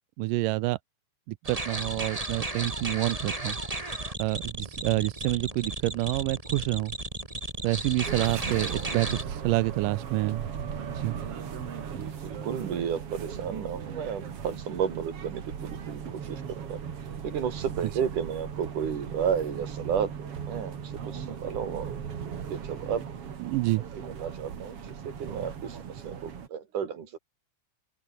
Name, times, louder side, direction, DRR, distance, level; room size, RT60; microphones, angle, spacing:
voice 1, 0.2-0.8 1.3-3.6 4.2-6.9 7.6-10.5 10.9-11.2 23.4-23.8, right 19 dB, 80° right, 2.2 m, -28 dB
sound 1, 1.4-9.2, right 2 dB, 10° right, 2.3 m, -34 dB
sound 2, 8.0-26.5, right 7 dB, 45° right, 2.8 m, -38 dB
voice 2, 11.9-16.8 17.2-22.0 22.3-23.1 23.9-27.2, right 7 dB, 65° right, 4.3 m, -33 dB
open air
omnidirectional pair, 4.0 m